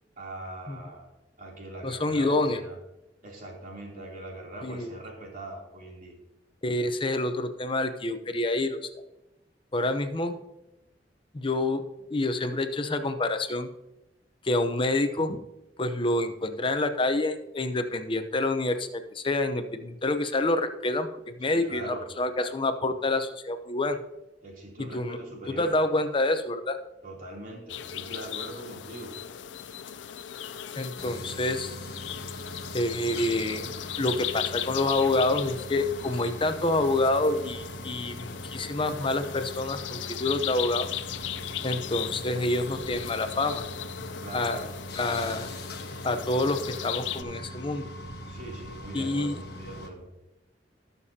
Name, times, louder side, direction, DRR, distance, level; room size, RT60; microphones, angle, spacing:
voice 1, 0.2-1.1 1.4-2.8 3.2-6.2 21.4-22.1 24.4-25.7 27.0-29.1 44.2-45.3 48.3-50.1, right 1 dB, 50° right, -2 dB, 3.1 m, -41 dB
voice 2, 1.8-2.6 4.6-4.9 6.6-8.9 9.7-10.4 11.3-11.8 12.1-13.7 14.4-15.4 15.8-21.1 21.4-24.0 24.9-25.2 25.5-26.8 30.8-31.8 32.7-40.9 41.6-43.6 44.3-44.6 45.0-45.5 46.0-47.9 48.9-49.4, left 2 dB, 30° left, 8 dB, 0.7 m, -27 dB
sound 1, 27.7-47.2, left 10 dB, 85° left, 0.4 m, -38 dB
sound 2, 31.0-49.9, equal, 60° left, 1.4 m, -41 dB
19.5 x 6.8 x 2.8 m, 0.96 s
head